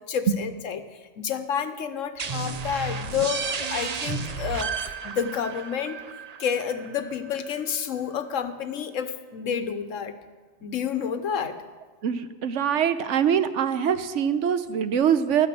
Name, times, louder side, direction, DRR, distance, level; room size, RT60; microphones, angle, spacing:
voice 1, 0.1-6.0 6.4-10.1 10.6-11.6, left 7 dB, 90° left, 10 dB, 1.3 m, -30 dB
sound 1, 2.2-7.6, right 5 dB, 40° right, 0.6 m, -33 dB
voice 2, 12.0-15.5, right 8 dB, 75° right, 11 dB, 1.1 m, -23 dB
12.5 x 9.6 x 7.6 m, 1.4 s
omnidirectional pair, 1.3 m